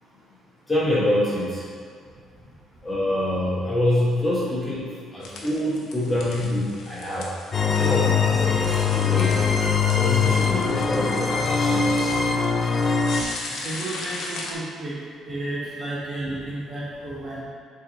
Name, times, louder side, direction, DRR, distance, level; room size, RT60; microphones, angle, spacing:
voice 1, 0.7-1.7 2.8-4.8 5.1-7.3 7.6-9.4 10.0-12.3, left 1 dB, 10° left, -8 dB, 1.4 m, -26 dB
sound 1, 5.2-14.5, left 3 dB, 65° left, 0.9 m, -38 dB
sound 2, 7.5-13.2, left 5 dB, 30° left, 0.4 m, -22 dB
voice 2, 13.5-14.9 15.3-17.4, right 1 dB, 30° right, -7 dB, 1.3 m, -32 dB
7.0 x 3.6 x 4.2 m, 2.1 s
cardioid pair, 160°, 0 cm